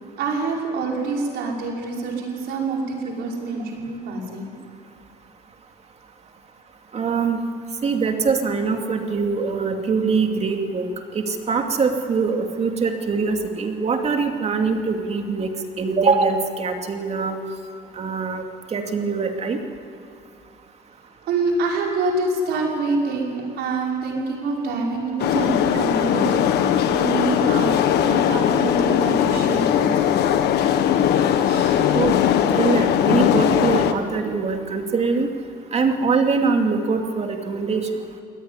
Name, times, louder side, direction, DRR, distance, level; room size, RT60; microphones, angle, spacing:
voice 1, 0.2-4.5 21.3-27.7 28.0-30.1 31.4-31.8, right 3 dB, 75° right, -1 dB, 5.8 m, -26 dB
voice 2, 6.9-7.4 7.8-10.9 11.1-15.5 15.8-17.4 18.0-18.4 18.7-19.6 31.9-32.2 32.5-35.3 35.7-37.9, right 4 dB, 40° right, 4 dB, 2.5 m, -23 dB
sound 1, 25.2-33.9, left 9 dB, 75° left, 1.5 m, -19 dB
22.5 x 18.0 x 9.8 m, 2.6 s
cardioid pair, 110°, 17 cm